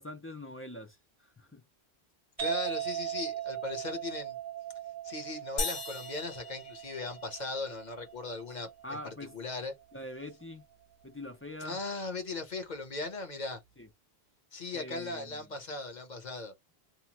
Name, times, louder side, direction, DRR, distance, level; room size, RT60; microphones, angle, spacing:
voice 1, 0.0-1.6 8.8-9.4 9.9-10.6 11.0-11.8 13.8-13.9 14.7-15.5, left 1 dB, 20° left, 0.4 m, -44 dB
voice 2, 2.4-4.4 5.0-9.0 9.3-9.7 11.6-13.6 14.5-16.5, left 3 dB, 45° left, 0.9 m, -38 dB
sound 1, 2.4-9.8, right 11 dB, 45° right, 0.7 m, -39 dB
sound 2, 5.6-7.5, left 3 dB, 80° left, 1.0 m, -38 dB
2.8 x 2.2 x 2.8 m
omnidirectional pair, 1.1 m